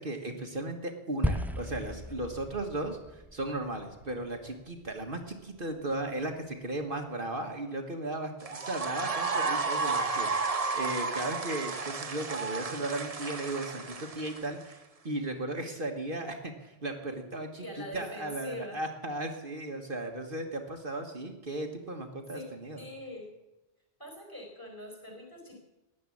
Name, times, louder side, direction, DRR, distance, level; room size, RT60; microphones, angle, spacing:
voice 1, 0.0-17.6 17.9-22.8, right 2 dB, 50° right, 4 dB, 1.6 m, -36 dB
sound 1, 1.2-5.6, equal, ahead, 0.5 m, -37 dB
sound 2, 8.4-14.7, right 4 dB, 35° right, 1.0 m, -32 dB
voice 2, 17.6-18.8 22.3-22.4 22.8-23.3 24.0-25.6, left 1 dB, 15° left, 1 dB, 4.6 m, -43 dB
15.5 x 10.5 x 8.5 m, 1.0 s
omnidirectional pair, 1.2 m